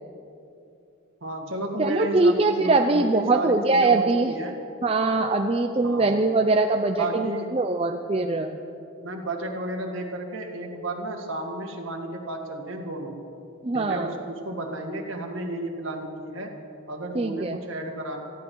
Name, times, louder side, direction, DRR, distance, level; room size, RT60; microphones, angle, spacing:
voice 1, 1.2-4.6 5.8-6.2 7.0-7.6 9.0-13.2 13.7-16.5 16.9-18.2, right 2 dB, 60° right, 2 dB, 1.9 m, -33 dB
voice 2, 1.8-4.3 4.8-8.6 13.6-14.1 17.1-17.6, right 3 dB, 25° right, 4 dB, 0.5 m, -22 dB
18.5 x 14.5 x 4.7 m, 2.7 s
head